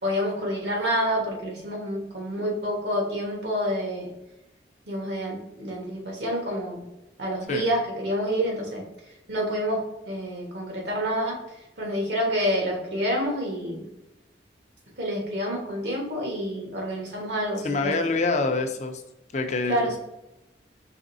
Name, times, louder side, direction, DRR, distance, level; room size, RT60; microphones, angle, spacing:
voice 1, 0.0-4.1 4.9-6.8 7.2-8.8 9.3-11.4 11.8-13.8 15.0-18.0 19.7-20.0, equal, 75° right, 0 dB, 1.3 m, -28 dB
voice 2, 17.6-19.0 19.3-20.0, left 3 dB, 40° left, 6 dB, 0.5 m, -26 dB
4.9 x 3.4 x 2.7 m, 0.94 s
head